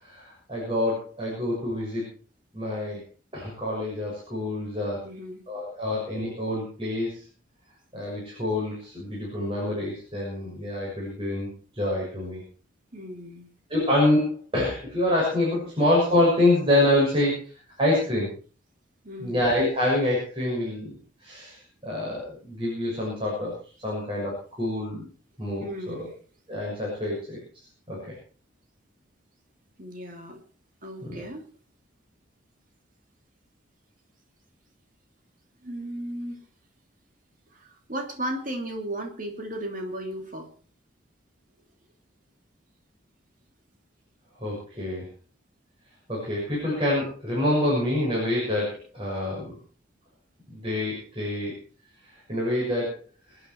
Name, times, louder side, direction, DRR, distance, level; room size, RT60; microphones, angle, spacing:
voice 1, 0.0-2.1 2.5-3.0 3.3-5.0 5.5-7.2 7.9-11.5 11.7-12.4 13.7-17.4 17.8-18.3 19.2-20.9 21.2-23.5 23.8-25.0 25.4-26.1 26.5-27.4 27.9-28.1 31.0-31.2 44.4-45.0 46.1-49.6 50.5-51.6 52.3-53.0, left 1 dB, 25° right, -5 dB, 6.9 m, -26 dB
voice 2, 5.0-5.4 12.9-13.5 17.1-17.3 19.0-19.5 25.6-26.1 29.8-30.4 30.8-31.4 35.6-36.4 37.5-40.5, right 1 dB, 40° right, 3 dB, 3.0 m, -35 dB
26.5 x 9.4 x 4.7 m, 0.39 s
head